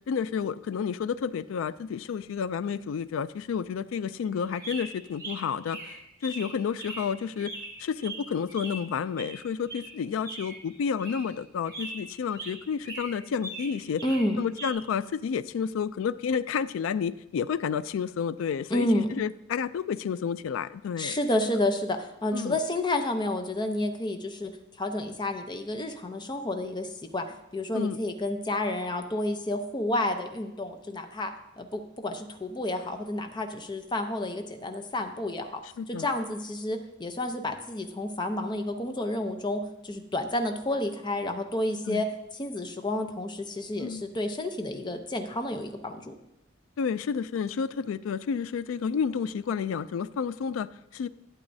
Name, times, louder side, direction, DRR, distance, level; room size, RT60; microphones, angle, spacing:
voice 1, 0.1-7.5 7.8-14.0 14.4-21.2 22.3-22.6 27.7-28.0 35.6-36.1 41.9-42.0 43.8-44.0 46.8-51.1, left 6 dB, 75° left, 16 dB, 0.3 m, -30 dB
sound 1, 4.4-8.9 9.2-11.4 11.6-12.6 12.8-14.7, right 2 dB, 20° right, 2.5 m, -41 dB
voice 2, 14.0-14.4 18.7-19.2 21.0-24.5 24.8-27.3 27.5-31.3 31.6-35.6 35.9-42.1 42.3-46.1, left 1 dB, 20° left, 6 dB, 0.7 m, -30 dB
11.5 x 8.1 x 2.7 m, 0.90 s
head